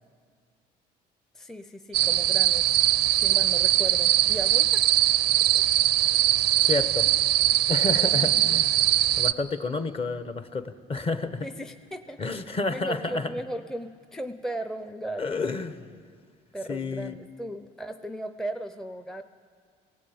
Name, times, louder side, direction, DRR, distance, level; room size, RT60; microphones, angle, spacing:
voice 1, 1.3-2.8 3.1-4.8 5.5-5.6 8.2-8.6 11.4-12.2 12.7-15.6 16.5-19.2, right 1 dB, 5° left, 8 dB, 0.6 m, -36 dB
sound 1, 1.9-9.3, right 14 dB, 75° right, 0.5 m, -21 dB
voice 2, 6.6-7.1 7.7-8.8 9.2-11.5 12.2-13.3 15.2-15.8 16.7-17.2, left 3 dB, 35° left, 11 dB, 1.0 m, -30 dB
17.5 x 17.5 x 8.6 m, 2.1 s
cardioid pair, 110°, 17 cm